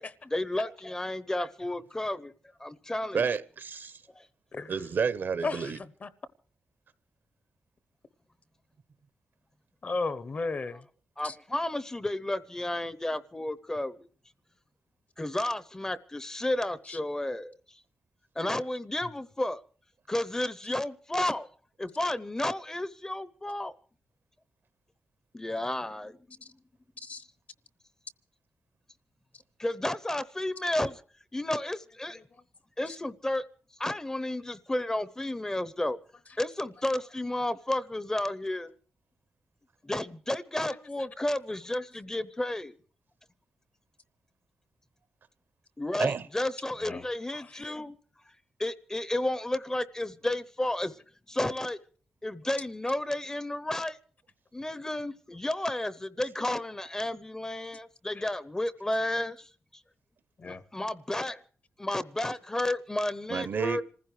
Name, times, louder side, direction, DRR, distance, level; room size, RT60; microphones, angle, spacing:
voice 1, 0.0-2.3 2.6-3.2 4.1-4.3 11.2-14.1 15.2-17.5 18.4-19.6 20.1-21.5 21.8-23.7 25.3-26.2 29.6-31.0 31.3-32.2 32.8-33.4 33.8-36.0 36.4-38.7 39.8-42.7 45.8-48.0 48.6-51.0 51.3-51.8 52.2-54.0 54.5-59.5 60.4-61.4 61.8-63.8, left 1 dB, 15° left, 0.7 m, -32 dB
voice 2, 3.1-4.0 4.7-5.8 46.0-46.3 63.3-63.8, right 6 dB, 55° right, 0.8 m, -30 dB
voice 3, 4.5-4.8 5.4-6.1 9.8-10.9 11.2-11.3 16.9-17.0 19.0-19.1 26.4-26.5 27.0-27.2 32.9-33.0 40.7-40.9 46.8-47.0 47.3-47.7 58.1-58.2 60.4-60.6, left 3 dB, 40° left, 0.9 m, -35 dB
26.5 x 15.5 x 3.2 m
wide cardioid pair, 145°, 4 cm